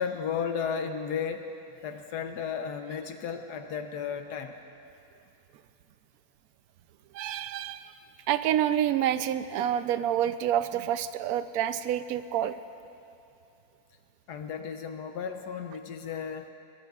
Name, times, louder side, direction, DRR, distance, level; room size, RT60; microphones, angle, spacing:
voice 1, 0.0-1.5 1.8-4.6 14.3-16.5, left 7 dB, 70° left, 6 dB, 1.2 m, -34 dB
voice 2, 7.1-7.9 8.3-12.6, right 10 dB, 70° right, 11 dB, 0.9 m, -28 dB
21.5 x 21.0 x 2.4 m, 2.7 s
omnidirectional pair, 1.9 m